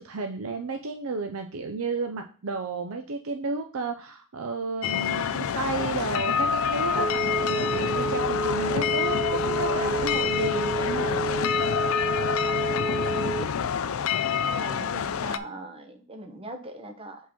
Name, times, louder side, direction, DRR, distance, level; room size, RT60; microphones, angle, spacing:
voice 1, 0.0-11.2, right 3 dB, 85° right, 5 dB, 0.6 m, -32 dB
sound 1, 4.8-15.4, left 7 dB, 75° left, 0.4 m, -27 dB
Telephone, 6.4-13.8, right 3 dB, ahead, 0.4 m, -30 dB
voice 2, 14.4-17.2, right 1 dB, 25° right, 5 dB, 1.0 m, -41 dB
5.1 x 4.0 x 5.3 m, 0.39 s
head